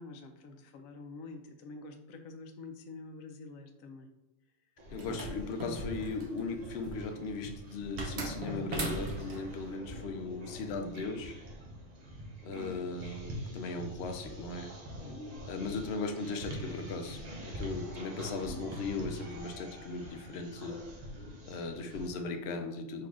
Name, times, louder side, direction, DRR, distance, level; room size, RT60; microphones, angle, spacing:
voice 1, 0.0-4.1 15.0-15.3, left 3 dB, 85° left, 6 dB, 1.0 m, -47 dB
sound 1, 4.8-22.1, equal, 40° right, 0.7 m, -44 dB
voice 2, 4.9-11.4 12.4-14.7 15.4-20.8 21.5-23.1, left 3 dB, 65° left, 6 dB, 0.7 m, -38 dB
sound 2, 5.0-6.4 8.0-9.4, right 2 dB, 55° right, 1.2 m, -38 dB
4.0 x 2.8 x 4.7 m, 0.98 s
omnidirectional pair, 1.4 m